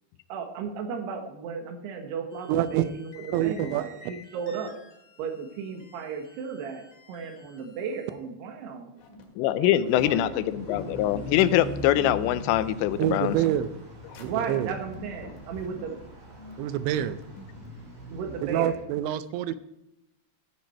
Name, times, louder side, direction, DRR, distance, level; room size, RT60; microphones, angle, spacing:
voice 1, 0.3-4.8 5.2-8.9 9.6-10.4 14.2-15.9 18.1-18.8, right 6 dB, 75° right, 5 dB, 3.3 m, -35 dB
sound 1, 2.3-8.1, left 2 dB, 35° left, 2.6 m, -53 dB
voice 2, 2.5-2.9 3.3-3.9 13.0-13.7 14.2-14.7 16.6-17.2 18.4-19.6, right 12 dB, 90° right, 13 dB, 2.9 m, -26 dB
sound 2, 9.0-17.7, left 2 dB, 60° left, 3.0 m, -46 dB
voice 3, 9.4-13.4, left 13 dB, 85° left, 14 dB, 2.8 m, -23 dB
sound 3, 9.9-18.8, equal, 45° right, 5.1 m, -42 dB
15.0 x 7.6 x 4.5 m, 0.89 s
omnidirectional pair, 5.1 m